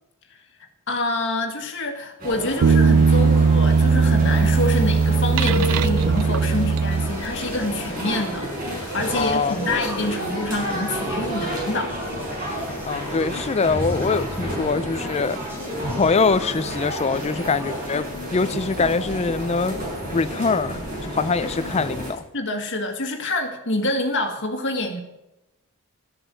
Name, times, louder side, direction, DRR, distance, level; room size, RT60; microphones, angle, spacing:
voice 1, 0.9-12.0 12.3-12.4 22.3-25.0, left 2 dB, 55° left, 4 dB, 1.9 m, -27 dB
sound 1, 2.2-22.1, equal, 40° right, 6.1 m, -30 dB
sound 2, 2.6-7.5, right 5 dB, 80° right, 0.4 m, -18 dB
sound 3, 6.9-18.1, equal, 10° right, 2.7 m, -41 dB
voice 2, 9.1-9.6 12.9-15.4 16.0-19.8 20.1-22.2, left 4 dB, 30° left, 15 dB, 0.4 m, -23 dB
13.5 x 7.7 x 8.0 m, 0.96 s
head